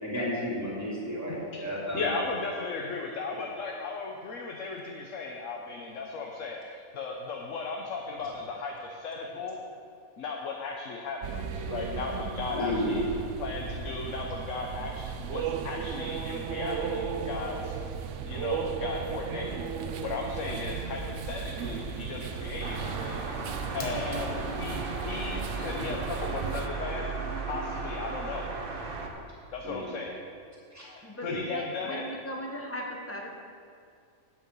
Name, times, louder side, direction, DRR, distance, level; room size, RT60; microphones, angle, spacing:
voice 1, 0.0-2.1 12.5-13.1 29.6-29.9 30.7-30.8 31.2-31.4, left 1 dB, 10° right, -6 dB, 2.7 m, -32 dB
voice 2, 1.9-9.6 10.2-13.0 13.4-17.8 18.2-19.6 20.0-27.0 27.5-28.5 29.5-30.2 30.8-32.0, left 4 dB, 65° left, 1 dB, 1.1 m, -36 dB
sound 1, 11.2-26.7, right 7 dB, 65° right, 0.8 m, -35 dB
sound 2, 22.6-29.1, right 3 dB, 45° right, 1.1 m, -35 dB
Fire, 23.6-24.6, left 3 dB, 90° left, 1.7 m, -44 dB
voice 3, 31.0-33.3, equal, 10° left, -1 dB, 1.0 m, -38 dB
8.9 x 8.7 x 5.4 m, 2.3 s
omnidirectional pair, 1.5 m